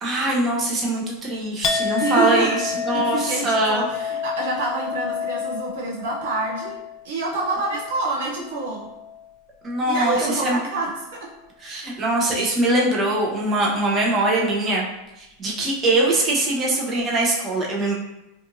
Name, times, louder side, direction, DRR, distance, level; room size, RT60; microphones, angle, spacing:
voice 1, 0.0-3.8 9.6-10.6 11.6-14.8 15.2-17.9, right 2 dB, 30° right, -2 dB, 0.8 m, -22 dB
Chink clink, 1.6-9.3 9.7-10.3, left 6 dB, 35° left, 0.3 m, -31 dB
voice 2, 2.0-2.6 2.9-6.8 7.0-8.9 9.9-11.3, right 2 dB, 70° right, -2 dB, 0.6 m, -27 dB
2.6 x 2.5 x 2.7 m, 0.92 s
hypercardioid pair, 100°, 0 cm